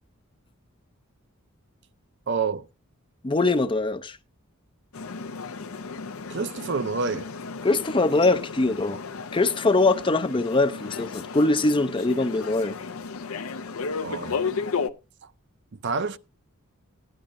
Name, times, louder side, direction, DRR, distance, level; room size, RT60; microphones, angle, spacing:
voice 1, 2.3-2.7 6.3-7.3 14.0-14.4 15.2-15.3 15.7-16.2, right 4 dB, 55° right, 0.5 m, -28 dB
voice 2, 3.2-4.2 7.6-9.0 9.3-12.8, left 2 dB, 25° left, 0.5 m, -22 dB
sound 1, 4.9-14.9, left 5 dB, 80° left, 0.7 m, -34 dB
16.5 x 10.0 x 2.6 m
head